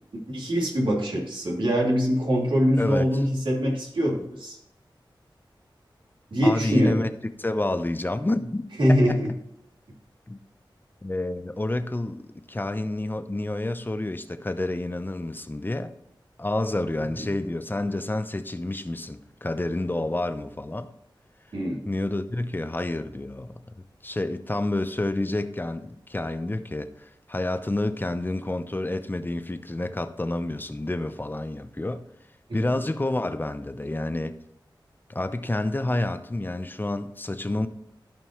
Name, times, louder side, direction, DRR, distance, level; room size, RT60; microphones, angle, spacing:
voice 1, 0.3-4.6 6.3-7.0 8.8-9.3 17.0-17.1 21.5-21.8, equal, 75° right, 2.7 m, -23 dB
voice 2, 2.8-3.2 6.4-7.1 7.4-9.2 10.3-10.4 11.0-15.9 16.4-20.9 21.9-23.5 24.0-32.0 32.5-34.4 35.1-37.7, left 2 dB, 25° left, 0.7 m, -29 dB
14.5 x 5.3 x 3.0 m
wide cardioid pair, 80°, 8 cm